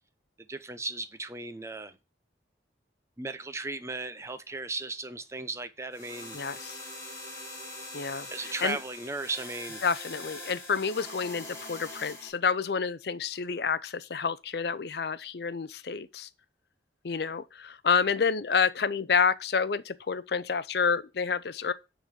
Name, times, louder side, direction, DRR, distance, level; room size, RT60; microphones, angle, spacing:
voice 1, 0.5-2.0 3.2-6.4 8.3-9.8, right 3 dB, 15° right, 0.6 m, -36 dB
sound 1, 5.9-12.3, left 2 dB, 15° left, 3.2 m, -43 dB
voice 2, 6.3-6.8 7.9-8.8 9.8-16.3 17.0-21.7, left 5 dB, 60° left, 0.5 m, -29 dB
9.1 x 3.8 x 6.7 m
head